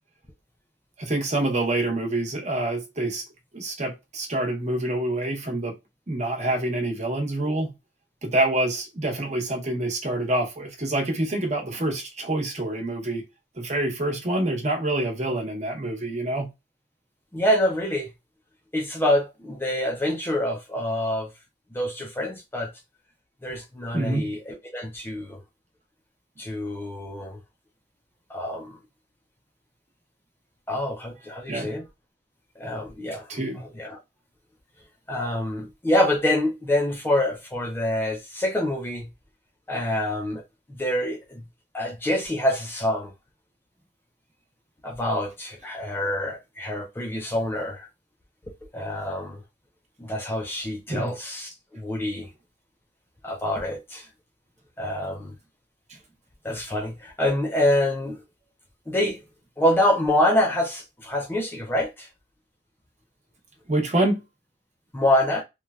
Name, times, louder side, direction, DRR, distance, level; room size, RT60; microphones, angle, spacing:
voice 1, 1.0-3.2 3.5-5.7 6.1-7.7 8.2-13.3 13.6-16.5 23.9-24.3 31.5-31.7 33.3-33.6 50.9-51.1 63.7-64.2, right 1 dB, 40° right, 0.9 m, -26 dB
voice 2, 17.3-18.1 18.7-21.3 21.7-22.7 23.4-25.4 26.4-27.4 28.3-28.8 30.7-31.9 32.6-34.0 35.1-39.1 39.7-40.4 40.7-41.5 41.7-43.1 44.8-47.9 48.5-49.4 50.0-52.3 53.2-54.1 54.8-55.4 56.4-58.3 58.9-59.2 59.6-62.1 64.9-65.4, left 1 dB, 15° left, 0.4 m, -26 dB
3.1 x 2.2 x 2.3 m
head